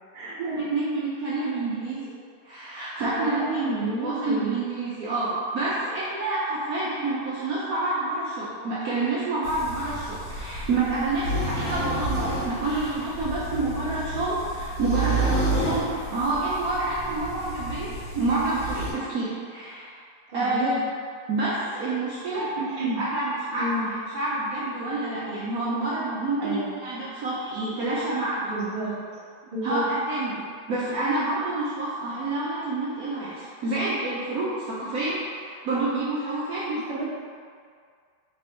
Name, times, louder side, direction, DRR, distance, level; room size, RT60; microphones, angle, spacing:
voice 1, 0.4-2.1 2.4-17.9 18.1-19.9 20.3-20.8 21.3-22.5 23.0-28.5 29.6-36.8, right 2 dB, 65° right, -8 dB, 0.9 m, -28 dB
voice 2, 3.2-4.5 20.3-20.8 22.3-23.0 23.6-23.9 26.4-26.7 28.5-29.2 29.5-29.8 36.9-37.1, right 2 dB, 40° right, -7 dB, 0.8 m, -30 dB
sound 1, 9.4-18.9, right 1 dB, 70° left, 1.5 m, -30 dB
3.4 x 3.3 x 4.3 m, 2.1 s
omnidirectional pair, 2.1 m